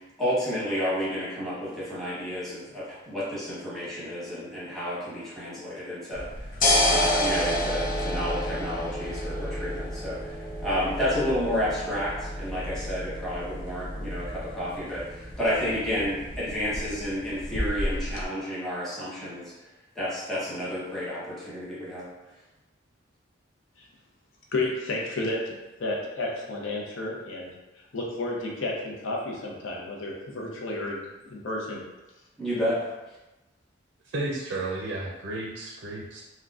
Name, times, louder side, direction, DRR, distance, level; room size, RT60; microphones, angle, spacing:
voice 1, 0.2-19.7 19.9-22.1 32.4-32.8, equal, ahead, -10 dB, 1.0 m, -31 dB
sound 1, 6.1-18.2, left 1 dB, 45° left, 0.4 m, -30 dB
voice 2, 24.5-27.5 27.9-31.8, left 2 dB, 85° left, -2 dB, 0.6 m, -32 dB
voice 3, 34.0-36.2, right 2 dB, 65° right, -2 dB, 0.4 m, -33 dB
3.7 x 2.2 x 2.3 m, 1.1 s
head